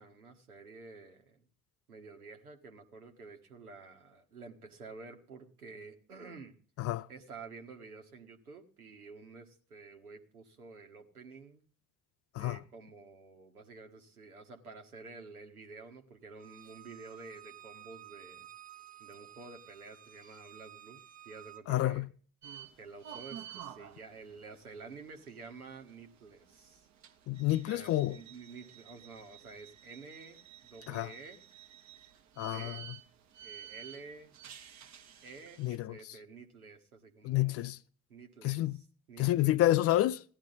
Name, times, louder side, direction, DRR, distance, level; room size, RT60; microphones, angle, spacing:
voice 1, 0.0-1.4 1.9-6.5 7.1-11.6 12.4-18.5 19.0-22.1 22.8-26.9 27.6-31.4 32.4-32.9 33.4-34.3 35.2-37.7 38.1-39.6, right 4 dB, 80° right, 1.6 m, -50 dB
Bowed string instrument, 16.4-21.6, right 11 dB, 20° right, 0.8 m, -53 dB
voice 2, 21.7-22.1 27.3-28.2 30.9-31.1 32.4-32.8 35.6-35.9 37.2-37.8 38.4-38.8 39.2-40.2, left 14 dB, 35° left, 0.5 m, -29 dB
sound 1, 22.4-35.8, right 9 dB, 40° right, 1.2 m, -52 dB
16.0 x 11.0 x 4.0 m
figure-of-eight pair, 60°, 43 cm